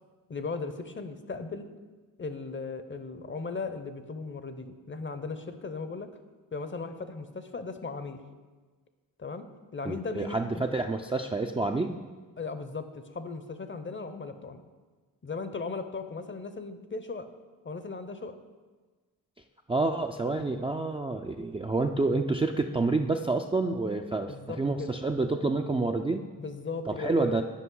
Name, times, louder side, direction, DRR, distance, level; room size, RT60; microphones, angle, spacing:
voice 1, 0.3-1.7 2.2-6.1 6.5-8.2 9.2-9.4 9.7-10.7 12.4-14.6 15.2-17.3 17.6-18.4 24.3-24.9 26.4-27.4, left 4 dB, 30° left, 10 dB, 0.6 m, -37 dB
voice 2, 9.9-12.0 19.7-24.3 24.6-26.2 26.9-27.4, right 3 dB, 15° right, 3 dB, 0.4 m, -28 dB
8.3 x 5.2 x 3.8 m, 1.4 s
supercardioid pair, 40°, 40 cm